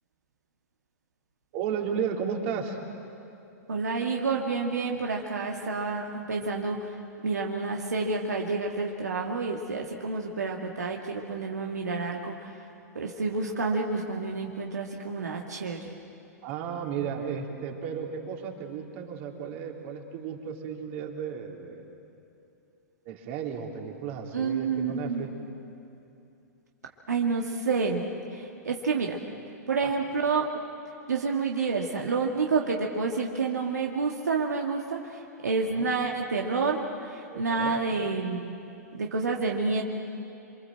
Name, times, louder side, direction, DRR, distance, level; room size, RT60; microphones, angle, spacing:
voice 1, 1.5-2.8 16.4-21.9 23.1-25.3 29.8-29.9 35.6-35.9 37.3-37.8, right 7 dB, 50° right, 1 dB, 3.8 m, -34 dB
voice 2, 3.7-6.9 7.2-12.6 13.0-15.8 24.3-25.3 27.1-28.0 28.3-29.2 29.7-30.4 31.1-38.5 38.9-39.8, right 4 dB, 90° right, 0 dB, 1.9 m, -29 dB
28.5 x 23.5 x 7.8 m, 2.7 s
hypercardioid pair, 115°, 9 cm